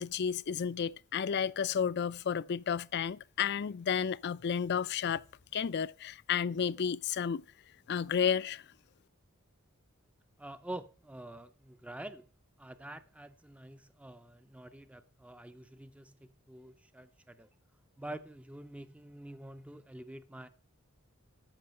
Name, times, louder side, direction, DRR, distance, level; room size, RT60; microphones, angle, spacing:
voice 1, 0.0-5.2 5.5-7.4 7.9-8.6, left 7 dB, 50° left, 0.4 m, -32 dB
voice 2, 10.4-12.3 12.6-17.5 18.0-20.5, right 1 dB, 5° right, 0.4 m, -47 dB
13.5 x 5.5 x 6.5 m
head